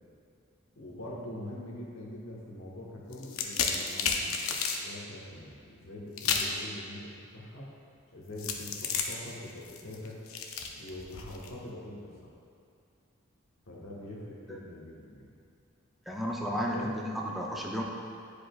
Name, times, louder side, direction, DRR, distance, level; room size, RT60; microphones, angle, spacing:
voice 1, 0.7-7.7 8.1-10.2 10.8-12.3 13.6-15.3 16.4-16.9, left 1 dB, 70° left, -4 dB, 1.2 m, -44 dB
sound 1, 3.1-4.8 6.2-6.6 8.4-11.5, left 6 dB, 90° left, 0.6 m, -32 dB
voice 2, 16.1-17.8, equal, ahead, -3 dB, 0.4 m, -33 dB
9.9 x 5.0 x 2.3 m, 2.5 s
head